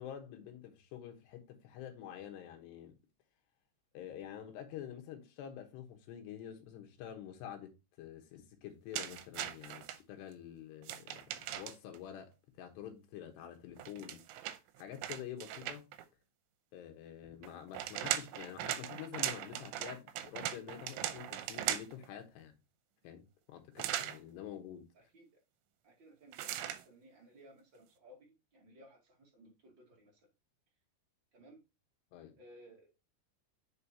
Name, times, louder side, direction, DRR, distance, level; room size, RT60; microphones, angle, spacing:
voice 1, 0.0-3.0 3.9-7.7 8.0-12.3 12.6-14.2 14.8-15.9 16.7-22.6 23.0-24.9 32.1-32.3, left 10 dB, 75° left, 3.2 m, -48 dB
sound 1, 8.9-10.0 10.8-12.0 13.8-16.0 17.4-22.1 23.8-24.2 26.3-26.8, right 12 dB, 90° right, 2.9 m, -39 dB
voice 2, 24.9-25.4 25.8-30.2 31.3-31.6 32.4-33.0, equal, 35° right, 2.3 m, -59 dB
7.8 x 6.4 x 2.7 m
omnidirectional pair, 5.2 m